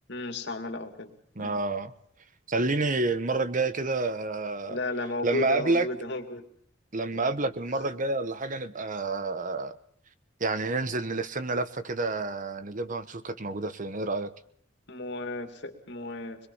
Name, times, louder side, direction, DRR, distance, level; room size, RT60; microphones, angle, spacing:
voice 1, 0.1-1.1 1.4-1.6 4.7-6.4 7.1-7.3 14.9-16.5, left 2 dB, 65° left, 5 dB, 2.6 m, -34 dB
voice 2, 1.4-1.9 2.5-4.8 5.2-5.9 6.9-9.8 10.4-14.3, right 3 dB, 45° right, 12 dB, 1.1 m, -29 dB
25.5 x 22.0 x 5.6 m, 0.62 s
head